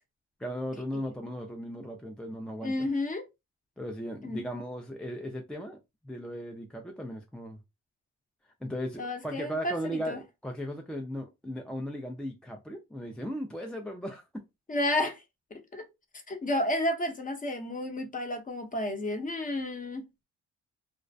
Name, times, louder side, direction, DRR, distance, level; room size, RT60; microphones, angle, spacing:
voice 1, 0.4-2.7 3.8-7.6 8.6-14.4, equal, 5° left, 0.3 m, -37 dB
voice 2, 2.6-3.3 4.2-4.4 9.0-10.2 14.7-15.2 15.5-15.8 16.3-20.1, left 1 dB, 25° left, 0.7 m, -31 dB
2.4 x 2.0 x 2.5 m
cardioid pair, 90°, 30 cm